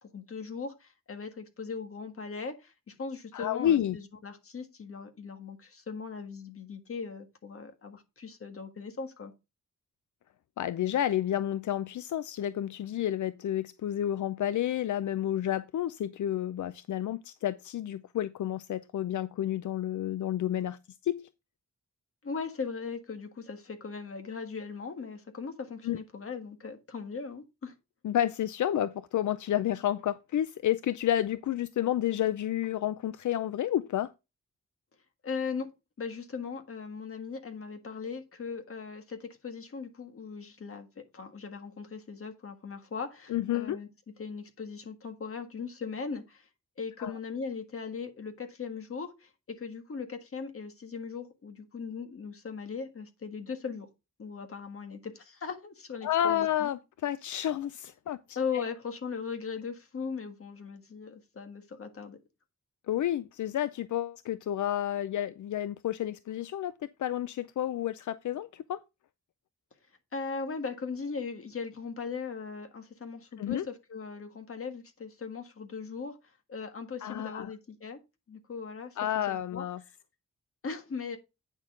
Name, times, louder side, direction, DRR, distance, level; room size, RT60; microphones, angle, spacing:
voice 1, 0.0-9.3 22.2-27.7 35.2-35.7 36.0-43.9 44.2-46.5 46.8-53.9 54.2-56.7 58.4-62.2 70.1-78.0 78.3-79.0 79.3-79.6 80.6-81.2, left 5 dB, 50° left, 1.6 m, -39 dB
voice 2, 3.3-4.0 10.6-21.3 25.8-26.0 28.0-34.1 43.3-43.8 47.0-47.1 56.0-58.6 62.9-66.7 67.0-68.8 73.4-73.7 77.0-77.5 79.0-79.8, left 11 dB, 80° left, 0.5 m, -30 dB
9.0 x 6.4 x 3.7 m
wide cardioid pair, 160°, 29 cm